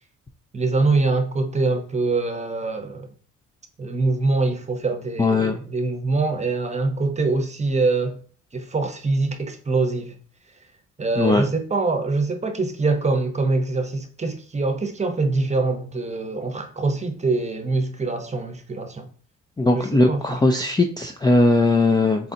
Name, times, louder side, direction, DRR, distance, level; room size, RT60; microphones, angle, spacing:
voice 1, 0.5-3.1 3.8-8.2 8.5-10.1 11.0-19.1 19.7-20.4, right 3 dB, 25° right, 0.8 m, -24 dB
voice 2, 5.2-5.6 11.2-11.4 19.6-22.3, left 2 dB, 15° left, 0.4 m, -19 dB
4.2 x 3.8 x 2.7 m
cardioid pair, 90°, 30 cm